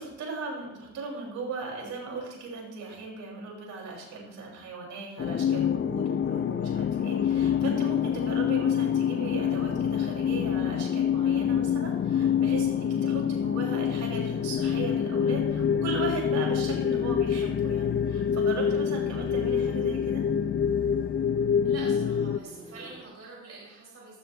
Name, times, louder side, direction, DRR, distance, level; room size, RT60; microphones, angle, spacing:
voice 1, 0.0-20.2, right 4 dB, 70° right, -1 dB, 6.4 m, -37 dB
sound 1, 5.2-22.4, left 8 dB, 40° left, 0.6 m, -26 dB
sound 2, 6.2-23.0, right 1 dB, 20° right, 3.0 m, -48 dB
voice 2, 21.6-24.2, right 3 dB, 55° right, -3 dB, 4.9 m, -45 dB
19.0 x 13.0 x 3.3 m, 0.90 s
cardioid pair, 90°, 30 cm